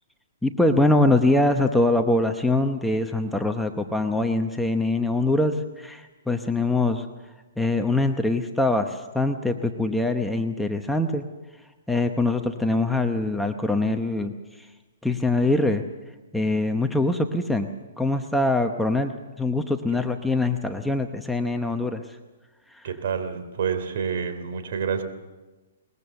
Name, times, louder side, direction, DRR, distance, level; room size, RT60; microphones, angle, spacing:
voice 1, 0.4-7.0 7.6-11.2 11.9-14.7 15.0-15.8 16.3-17.7 18.0-19.1 19.4-22.0 22.7-22.9, left 2 dB, ahead, 5 dB, 0.9 m, -23 dB
voice 2, 22.8-25.0, right 7 dB, 60° right, 9 dB, 3.1 m, -28 dB
22.0 x 20.5 x 7.0 m, 1.2 s
hypercardioid pair, 155°, 0 cm